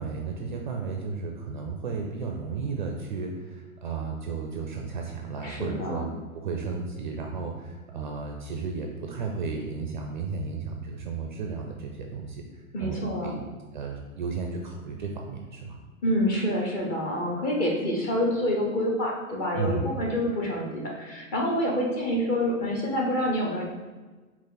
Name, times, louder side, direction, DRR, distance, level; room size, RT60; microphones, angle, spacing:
voice 1, 0.0-6.1 6.3-12.4 12.8-13.5 13.7-15.8 19.5-20.0, right 4 dB, 35° right, 2 dB, 0.4 m, -33 dB
voice 2, 5.4-6.0 12.7-13.4 16.0-23.6, equal, 20° left, -1 dB, 0.6 m, -27 dB
5.5 x 2.5 x 3.8 m, 1.3 s
hypercardioid pair, 120°, 43 cm